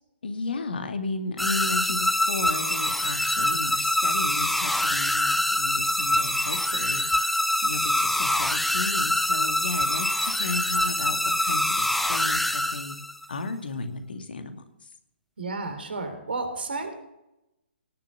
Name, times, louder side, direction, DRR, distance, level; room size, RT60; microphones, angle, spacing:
voice 1, 0.2-13.0 13.3-14.6, left 3 dB, 60° left, 7 dB, 2.2 m, -34 dB
sound 1, 1.4-13.2, left 1 dB, ahead, 0.6 m, -25 dB
voice 2, 15.4-16.9, right 3 dB, 60° right, 6 dB, 3.6 m, -32 dB
18.0 x 7.7 x 8.1 m, 0.86 s
figure-of-eight pair, 130°, 6 cm